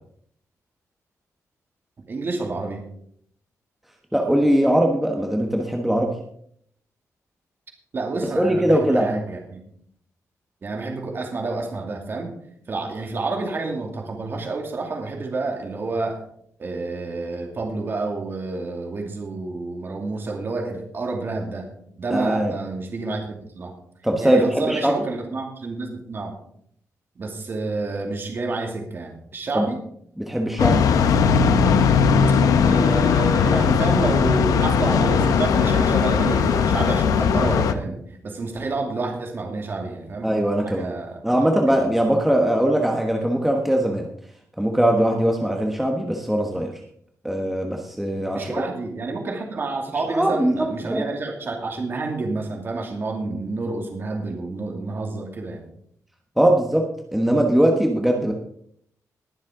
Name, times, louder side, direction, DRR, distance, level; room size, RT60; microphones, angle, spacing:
voice 1, 2.1-2.8 7.9-9.6 10.6-12.3 12.7-16.2 16.6-21.7 22.0-23.7 24.2-26.3 27.2-29.8 32.6-40.3 40.7-41.2 41.8-41.9 48.3-55.6, right 3 dB, 40° right, 1 dB, 2.5 m, -29 dB
voice 2, 4.1-6.2 8.2-9.2 22.1-22.5 24.0-25.1 29.5-29.7 30.2-30.8 40.2-40.9 41.2-44.1 44.6-46.7 47.2-48.6 50.1-51.0 56.4-58.3, right 1 dB, 5° right, 1 dB, 1.2 m, -21 dB
sound 1, 30.6-37.7, left 6 dB, 85° left, 0.9 m, -18 dB
21.0 x 7.5 x 3.8 m, 0.67 s
wide cardioid pair, 135°, 6 cm